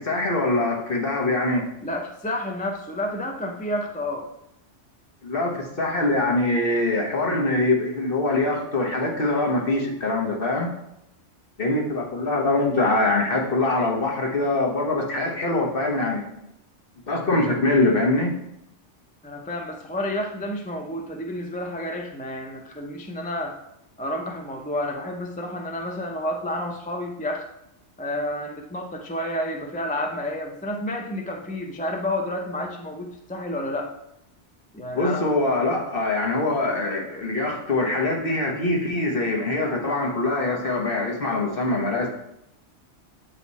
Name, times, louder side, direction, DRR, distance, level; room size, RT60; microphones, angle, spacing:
voice 1, 0.0-1.7 5.2-10.7 11.6-16.2 17.1-18.3 34.9-42.1, left 2 dB, 50° left, 0 dB, 1.4 m, -23 dB
voice 2, 1.8-4.3 19.2-23.6 24.0-27.5 28.0-34.0 34.7-35.4, left 1 dB, 10° left, 2 dB, 0.5 m, -30 dB
8.8 x 4.0 x 4.1 m, 0.81 s
omnidirectional pair, 1.2 m